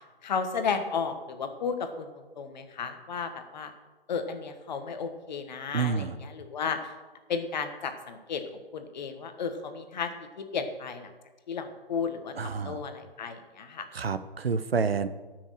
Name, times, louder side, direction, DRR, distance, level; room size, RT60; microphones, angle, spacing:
voice 1, 0.0-3.7 4.1-6.9 7.3-8.4 8.7-10.1 10.4-11.1 11.5-13.9, left 5 dB, 45° left, 8 dB, 1.4 m, -33 dB
voice 2, 5.7-6.2 12.4-12.8 13.9-15.1, right 5 dB, 80° right, 12 dB, 0.9 m, -28 dB
13.0 x 6.3 x 6.6 m, 1.3 s
figure-of-eight pair, 140°, 30 cm